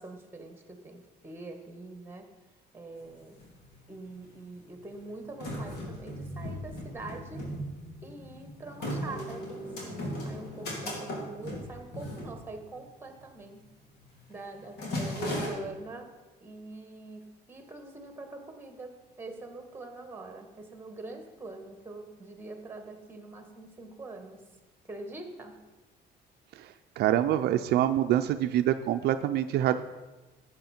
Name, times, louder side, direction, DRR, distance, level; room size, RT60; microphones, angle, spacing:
voice 1, 0.0-2.3 2.7-3.4 3.9-7.5 8.0-13.7 14.3-16.1 16.4-24.5 24.8-25.6, right 2 dB, 15° right, 6 dB, 1.6 m, -44 dB
sound 1, 3.0-3.1 3.2-4.1 4.7-13.0 13.3-13.6 13.9-14.2 14.5-15.5, left 1 dB, 70° left, 3.3 m, -37 dB
voice 2, 27.0-29.8, right 12 dB, 75° right, 9 dB, 0.5 m, -25 dB
12.0 x 8.4 x 4.4 m, 1.2 s
cardioid pair, 110°, 17 cm